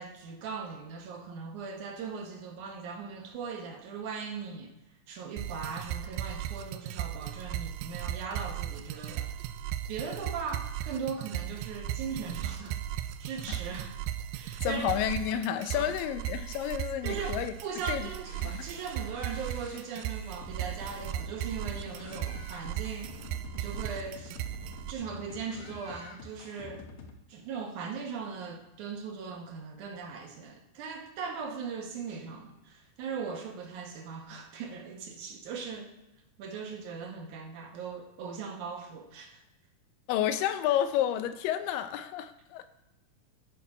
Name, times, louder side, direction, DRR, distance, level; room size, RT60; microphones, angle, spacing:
voice 1, 0.0-4.7 5.1-9.3 9.9-12.8 13.2-13.9 14.3-15.0 15.7-15.9 17.0-23.2 23.5-24.4 24.9-26.9 27.3-35.9 36.4-39.4, right 5 dB, 70° right, 2.4 m, -39 dB
sound 1, 5.4-24.9, right 11 dB, 90° right, 2.2 m, -37 dB
voice 2, 14.6-17.5 17.9-18.1 18.4-18.7 40.1-42.7, left 10 dB, 85° left, 2.3 m, -30 dB
sound 2, 18.2-27.1, left 3 dB, 70° left, 2.1 m, -48 dB
11.0 x 5.6 x 4.8 m
omnidirectional pair, 3.9 m